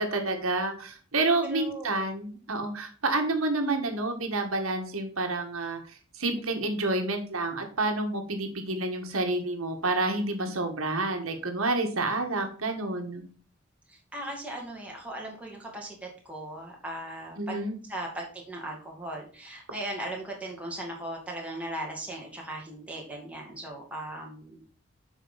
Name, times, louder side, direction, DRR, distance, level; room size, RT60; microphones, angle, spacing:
voice 1, 0.0-5.8 6.2-13.2 17.4-17.7, right 2 dB, 80° right, 4 dB, 1.7 m, -29 dB
voice 2, 1.4-2.1 13.9-17.6 17.9-24.6, right 1 dB, 5° right, -2 dB, 2.5 m, -38 dB
7.9 x 6.0 x 4.1 m, 0.42 s
head